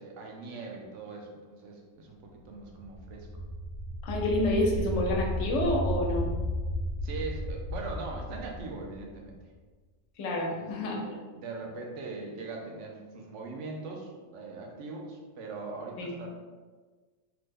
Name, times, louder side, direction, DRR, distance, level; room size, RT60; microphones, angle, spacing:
voice 1, 0.0-3.3 7.0-9.4 10.5-16.3, right 3 dB, 85° right, 0 dB, 0.9 m, -41 dB
sound 1, 2.6-9.4, equal, 55° left, 0.8 m, -34 dB
voice 2, 4.0-6.3 10.2-11.0 16.0-16.1, left 1 dB, 80° left, -1 dB, 0.9 m, -28 dB
3.0 x 2.1 x 3.3 m, 1.4 s
omnidirectional pair, 1.2 m